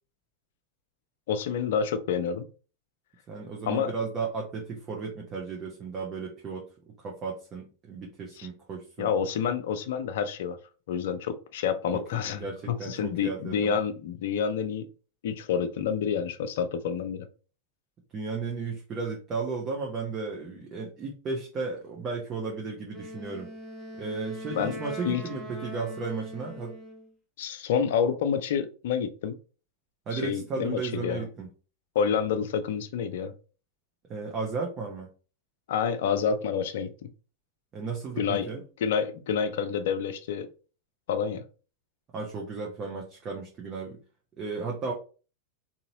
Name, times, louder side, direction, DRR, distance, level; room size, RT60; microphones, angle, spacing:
voice 1, 1.3-2.5 3.7-3.9 8.4-8.5 9.0-10.6 10.9-14.9 15.2-17.3 24.5-24.7 25.0-25.2 27.4-29.3 30.1-31.2 31.9-33.3 35.7-37.1 38.2-38.5 38.8-40.5 41.1-41.4, left 7 dB, 55° left, 10 dB, 0.5 m, -28 dB
voice 2, 3.3-6.7 7.0-9.1 11.9-13.8 18.1-23.5 23.9-26.7 30.1-31.5 34.1-35.1 37.7-38.6 42.1-44.0 44.4-44.9, right 4 dB, 30° right, -2 dB, 0.8 m, -34 dB
Wind instrument woodwind instrument, 22.9-27.1, equal, 10° left, 1.0 m, -41 dB
3.9 x 2.7 x 2.7 m, 0.36 s
figure-of-eight pair, 90°, 0 cm